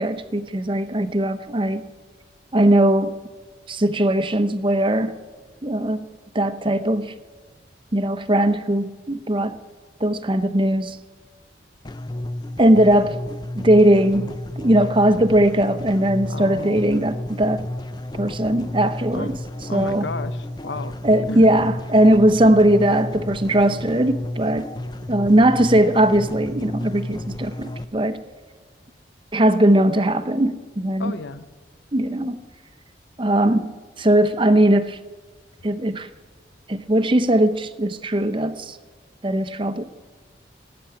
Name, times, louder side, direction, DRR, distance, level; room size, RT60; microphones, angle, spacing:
voice 1, 0.0-1.9 2.5-3.2 3.7-5.2 5.6-6.1 6.3-7.1 7.9-9.6 10.0-11.0 12.6-13.2 13.5-17.7 18.2-19.3 19.7-20.0 21.0-24.7 25.1-28.2 29.3-31.1 31.9-32.4 33.2-35.0 35.6-36.1 36.7-38.8 39.2-39.8, right 1 dB, 25° right, 11 dB, 0.8 m, -19 dB
sound 1, 11.8-27.8, left 1 dB, 25° left, 0.5 m, -32 dB
voice 2, 16.3-16.8 19.1-19.4 19.7-21.0 21.3-21.5 31.0-31.4, left 3 dB, 75° left, 14 dB, 0.8 m, -32 dB
18.5 x 8.7 x 8.9 m, 1.4 s
head